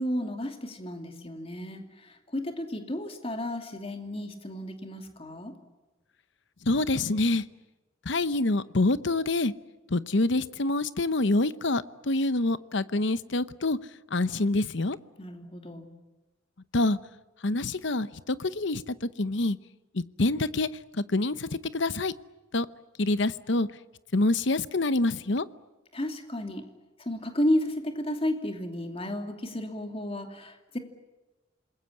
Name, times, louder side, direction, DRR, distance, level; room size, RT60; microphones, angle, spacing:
voice 1, 0.0-5.5 15.2-15.9 25.9-26.7 27.0-30.8, left 1 dB, 30° left, 5 dB, 2.7 m, -32 dB
voice 2, 6.6-7.4 8.0-9.5 9.9-13.8 14.1-15.0 16.7-17.0 17.4-19.6 19.9-20.7 21.0-22.1 22.5-22.7 23.0-23.7 24.1-25.5, left 2 dB, 60° left, 15 dB, 0.9 m, -26 dB
27.5 x 21.5 x 8.6 m, 1.1 s
head